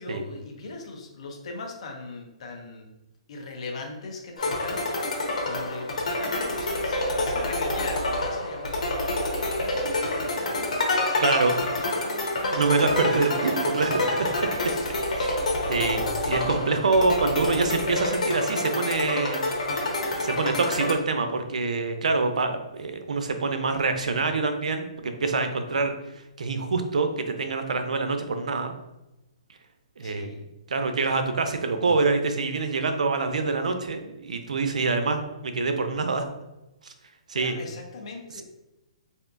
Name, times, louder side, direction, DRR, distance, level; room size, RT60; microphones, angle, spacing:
voice 1, 0.0-2.9 3.3-11.3 11.6-12.7 14.6-15.9 16.2-17.1 30.0-30.4 37.3-38.4, left 3 dB, 55° left, 2 dB, 0.7 m, -40 dB
sound 1, 4.4-20.9, left 2 dB, 80° left, 1.0 m, -27 dB
voice 2, 11.2-11.5 12.5-14.1 15.0-15.4 15.7-19.4 20.2-25.9 26.4-28.7 30.0-36.2 37.3-37.6, right 3 dB, 85° right, 7 dB, 0.5 m, -26 dB
3.4 x 2.6 x 2.5 m, 0.96 s
hypercardioid pair, 155°, 4 cm